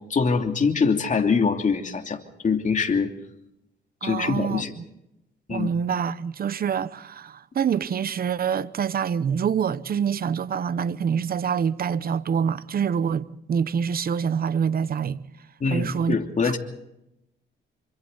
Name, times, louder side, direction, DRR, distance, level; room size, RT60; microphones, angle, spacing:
voice 1, 0.1-3.1 4.0-4.7 5.5-5.7 15.6-16.6, left 5 dB, 40° left, 2.9 m, -24 dB
voice 2, 4.0-4.8 5.5-15.2 15.7-16.2 16.4-16.6, right 7 dB, 50° right, 1.0 m, -26 dB
27.0 x 25.0 x 4.1 m
cardioid pair, 90°, 20 cm